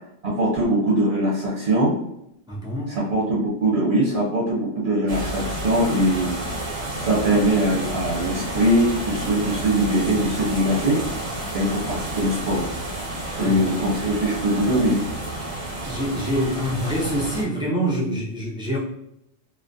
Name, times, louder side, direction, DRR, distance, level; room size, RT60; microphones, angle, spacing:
voice 1, 0.2-1.9 2.9-6.3 7.0-11.0 11.5-12.6 13.4-15.0, right 1 dB, 60° right, -5 dB, 1.1 m, -21 dB
voice 2, 2.5-3.0 13.4-13.6 15.8-18.8, equal, 5° right, -7 dB, 0.3 m, -26 dB
sound 1, 5.1-17.4, right 1 dB, 35° right, 0.7 m, -30 dB
2.4 x 2.1 x 2.6 m, 0.78 s
omnidirectional pair, 1.3 m